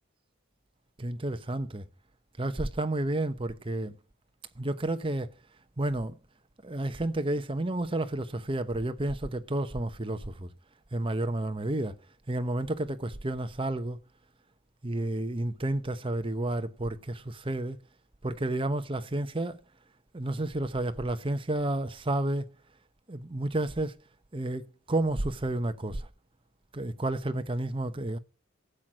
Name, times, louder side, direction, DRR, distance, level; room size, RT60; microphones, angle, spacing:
voice 1, 1.0-1.8 2.4-3.9 4.6-5.3 5.8-6.1 6.6-10.5 10.9-12.0 12.3-14.0 14.8-17.8 18.2-19.6 20.1-22.5 23.1-24.0 24.3-26.1 26.7-28.2, right 1 dB, 25° right, 0.8 m, -31 dB
13.5 x 7.7 x 6.2 m
head